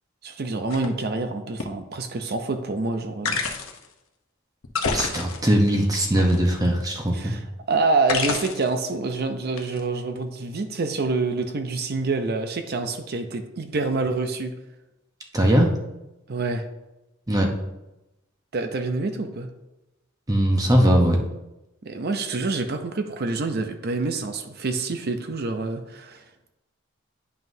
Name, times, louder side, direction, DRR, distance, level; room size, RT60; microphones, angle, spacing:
voice 1, 0.2-3.4 7.1-14.5 16.3-16.6 18.5-19.5 21.8-26.2, right 3 dB, 50° right, 7 dB, 0.6 m, -27 dB
sound 1, 0.7-0.9 1.6-1.7 3.3-3.9 4.6-5.7 6.2-6.8 8.1-8.7 9.6-9.8, left 5 dB, 85° left, 0.8 m, -28 dB
voice 2, 4.9-7.3 15.3-15.7 17.3-17.5 20.3-21.2, equal, 20° right, 2 dB, 0.8 m, -20 dB
9.3 x 5.6 x 2.7 m, 0.96 s
head